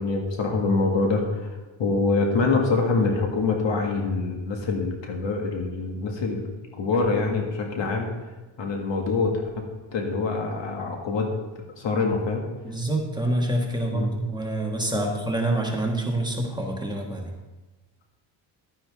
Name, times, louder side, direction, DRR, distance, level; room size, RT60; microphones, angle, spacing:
voice 1, 0.0-6.4 6.8-8.1 8.6-9.6 9.9-11.3 11.7-12.4 13.9-14.1 14.9-15.2, left 3 dB, 65° left, 1 dB, 2.0 m, -25 dB
voice 2, 12.6-17.3, right 1 dB, 10° right, 0 dB, 1.5 m, -26 dB
11.0 x 9.8 x 3.6 m, 1.2 s
cardioid pair, 115°, 47 cm